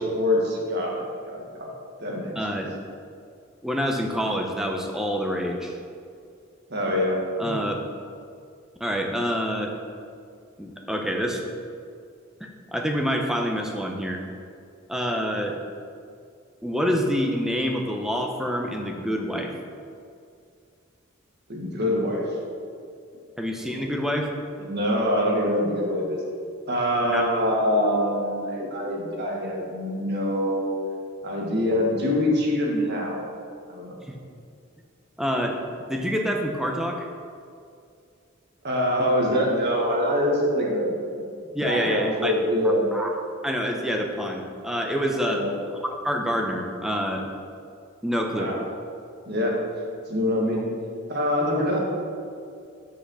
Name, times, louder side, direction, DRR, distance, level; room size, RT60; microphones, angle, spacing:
voice 1, 0.0-1.7 2.0-2.3 6.7-7.6 21.5-22.3 24.6-26.2 26.7-30.7 31.2-33.2 33.7-34.0 38.6-40.9 41.6-42.8 45.3-45.5 48.3-48.6 49.2-49.6 50.1-50.6 51.1-51.8, equal, 50° right, -2 dB, 1.6 m, -24 dB
voice 2, 2.4-2.7 3.6-5.7 7.4-7.8 8.8-9.7 10.6-11.5 12.4-14.2 14.9-15.6 16.6-19.5 23.4-24.3 27.0-27.2 34.1-34.2 35.2-37.1 41.5-42.3 42.9-43.1 43.4-45.4 45.8-47.2 48.0-48.5, equal, ahead, 1 dB, 0.7 m, -27 dB
6.3 x 5.7 x 6.2 m, 2.3 s
head